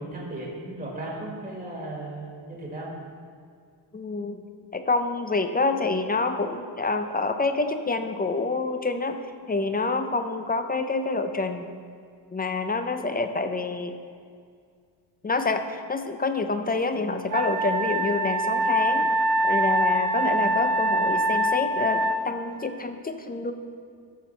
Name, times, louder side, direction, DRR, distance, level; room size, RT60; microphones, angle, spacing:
voice 1, 0.0-2.9, right 2 dB, 15° right, -3 dB, 1.5 m, -36 dB
voice 2, 3.9-4.4 4.7-9.2 9.5-11.7 12.3-14.0 15.2-19.1 19.4-23.5, left 3 dB, 20° left, 8 dB, 0.4 m, -27 dB
Wind instrument woodwind instrument, 17.3-22.2, right 1 dB, 45° right, 0.6 m, -24 dB
14.0 x 5.9 x 4.2 m, 2.2 s
wide cardioid pair, 175°, 45 cm